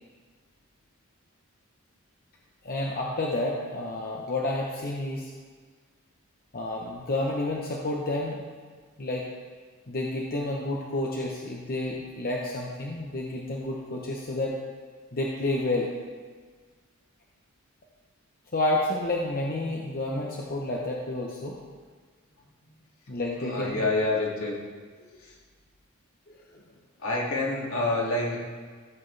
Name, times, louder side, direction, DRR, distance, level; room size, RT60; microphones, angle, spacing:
voice 1, 2.6-5.3 6.5-8.4 9.0-9.2 9.9-14.6 15.1-15.9 18.5-21.6 23.1-23.7 26.3-26.6, left 2 dB, 45° left, -2 dB, 1.0 m, -30 dB
voice 2, 23.4-24.6 25.2-25.4 27.0-28.4, left 2 dB, 70° left, -4 dB, 2.4 m, -28 dB
15.5 x 7.7 x 3.3 m, 1.6 s
head